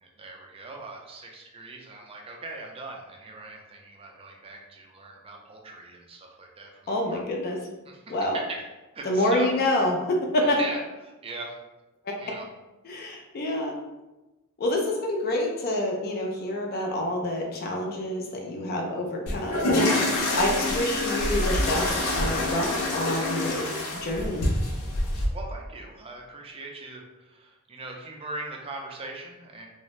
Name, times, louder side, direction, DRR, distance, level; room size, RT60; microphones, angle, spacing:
voice 1, 0.0-7.2 7.8-8.0 8.5-8.6 8.9-9.5 10.4-11.5 12.2-12.5 25.3-29.7, right 2 dB, 25° right, 0 dB, 0.4 m, -40 dB
voice 2, 6.9-7.6 8.1-8.4 9.0-10.6 12.1-12.2 12.8-13.7 14.6-23.7 24.0-24.4, left 1 dB, 45° left, 1 dB, 0.4 m, -27 dB
sound 1, 19.3-25.3, left 1 dB, 90° left, 0.6 m, -26 dB
2.6 x 2.0 x 3.0 m, 1.1 s
head